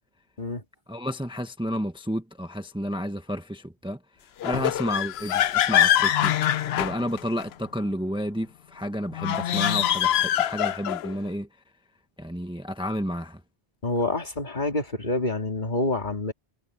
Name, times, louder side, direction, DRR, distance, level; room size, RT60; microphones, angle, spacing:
voice 1, 0.9-4.0 4.4-6.3 6.7-11.5 12.2-13.4, equal, 5° right, 1.0 m, -31 dB
sound 1, 4.4-7.5 9.1-11.1, left 11 dB, 80° left, 0.9 m, -24 dB
voice 2, 13.8-16.3, left 2 dB, 50° left, 2.9 m, -27 dB
omnidirectional pair, 1.0 m